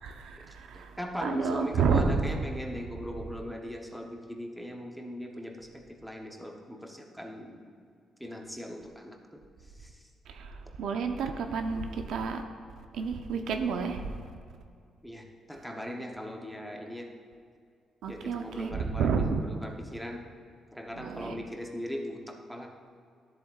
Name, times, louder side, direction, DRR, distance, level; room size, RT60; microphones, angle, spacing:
voice 1, 0.0-2.4 10.3-12.4 12.9-14.3 18.0-19.4 20.9-21.4, right 5 dB, 80° right, 5 dB, 0.7 m, -30 dB
voice 2, 0.7-7.7 8.2-10.1 15.0-17.1 18.1-20.3 20.7-22.7, equal, ahead, 1 dB, 0.9 m, -39 dB
13.0 x 7.7 x 2.4 m, 2.2 s
cardioid pair, 120°, 0 cm